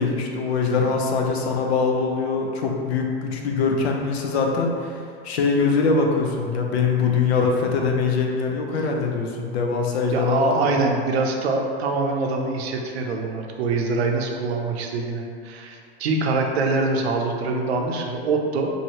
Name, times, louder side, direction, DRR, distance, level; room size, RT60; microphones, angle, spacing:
voice 1, 0.0-10.7, left 4 dB, 85° left, 1 dB, 0.6 m, -23 dB
voice 2, 10.1-18.7, right 3 dB, 85° right, 2 dB, 0.5 m, -24 dB
2.8 x 2.6 x 2.9 m, 2.2 s
hypercardioid pair, 120°, 31 cm